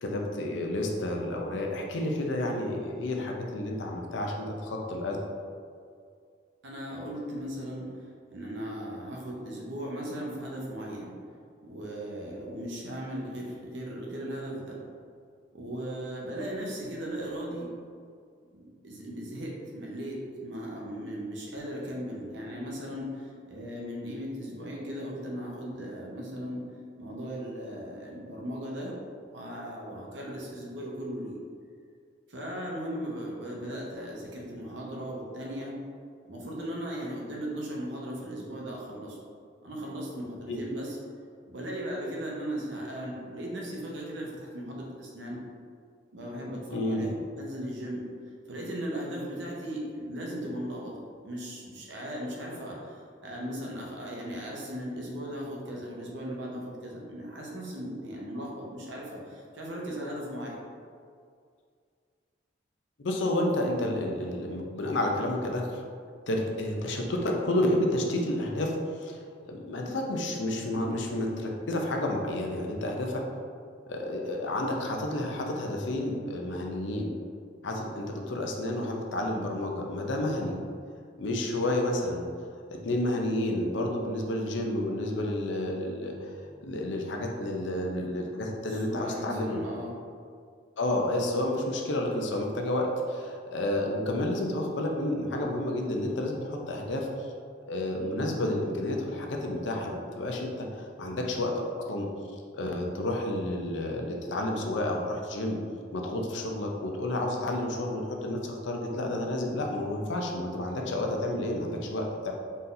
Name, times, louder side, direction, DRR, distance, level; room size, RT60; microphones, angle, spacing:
voice 1, 0.0-5.2 40.5-40.6 46.7-47.0 63.0-65.8 66.3-73.2 73.9-77.1 77.6-80.6 81.2-82.3 82.8-86.3 86.6-89.6 90.8-97.1 97.7-101.5 101.9-102.1 102.5-105.6 105.9-112.3, left 1 dB, 75° left, 1 dB, 0.6 m, -30 dB
voice 2, 6.6-11.1 11.6-14.8 15.5-17.7 18.5-26.6 27.0-29.0 29.3-31.4 32.3-35.7 36.2-39.2 39.6-41.0 41.5-45.4 46.1-48.0 48.5-50.9 51.2-60.6 88.7-89.9, equal, 70° right, -3 dB, 0.9 m, -37 dB
4.1 x 2.6 x 3.9 m, 2.2 s
head